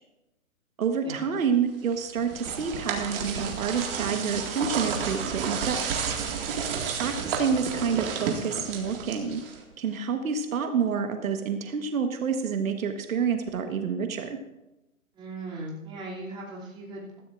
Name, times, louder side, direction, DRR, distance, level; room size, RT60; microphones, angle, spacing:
voice 1, 0.8-6.2 7.0-9.4 9.8-14.4, right 6 dB, 75° right, 6 dB, 1.4 m, -28 dB
sound 1, 1.9-9.7, right 6 dB, 40° right, 2.0 m, -31 dB
voice 2, 15.1-17.2, right 2 dB, 10° right, -6 dB, 2.8 m, -38 dB
15.5 x 14.0 x 2.5 m, 0.97 s
hypercardioid pair, 155°, 42 cm